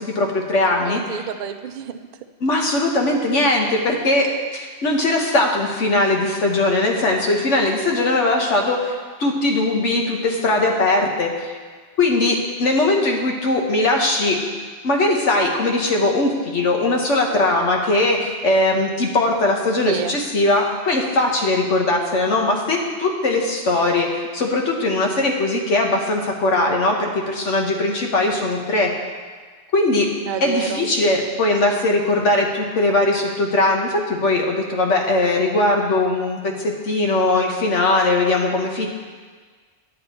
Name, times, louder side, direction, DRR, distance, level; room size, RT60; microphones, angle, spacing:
voice 1, 0.0-1.2 2.4-11.5 12.0-14.4 14.8-28.9 29.7-30.1 30.4-38.9, left 2 dB, 85° left, 1 dB, 1.5 m, -20 dB
voice 2, 0.8-2.0 19.9-20.2 30.3-30.9, right 8 dB, 55° right, 8 dB, 0.6 m, -28 dB
9.5 x 8.6 x 4.3 m, 1.5 s
omnidirectional pair, 1.2 m